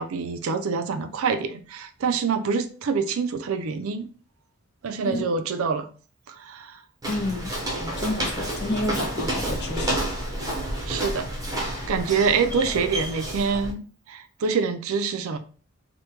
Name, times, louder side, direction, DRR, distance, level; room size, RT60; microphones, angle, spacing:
voice 1, 0.0-4.1 4.8-5.9 6.3-6.8 10.9-11.3 11.9-15.4, right 5 dB, 75° right, 0.4 m, -26 dB
voice 2, 7.0-10.0, left 1 dB, 50° left, 0.5 m, -30 dB
Walk footsteps, 7.0-13.7, right 1 dB, 15° right, 0.8 m, -30 dB
3.2 x 2.2 x 3.1 m
head